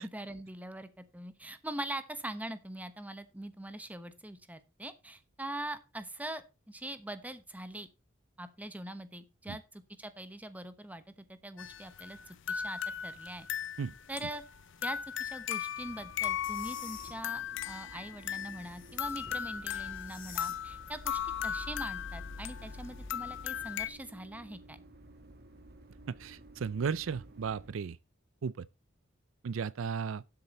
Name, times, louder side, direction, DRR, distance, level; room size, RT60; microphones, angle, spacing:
voice 1, 0.0-7.9 8.4-11.0 11.3-13.5 14.1-14.4 14.8-24.8, right 1 dB, 10° right, 1.0 m, -43 dB
sound 1, 11.6-23.9, left 9 dB, 65° left, 0.6 m, -37 dB
sound 2, 15.7-27.7, right 1 dB, 50° right, 1.5 m, -54 dB
sound 3, 16.4-17.1 18.2-19.4 19.9-20.6, left 6 dB, 45° left, 3.4 m, -50 dB
voice 2, 26.1-28.0 28.4-28.7 29.4-30.2, right 6 dB, 75° right, 0.4 m, -35 dB
12.0 x 7.7 x 4.2 m
head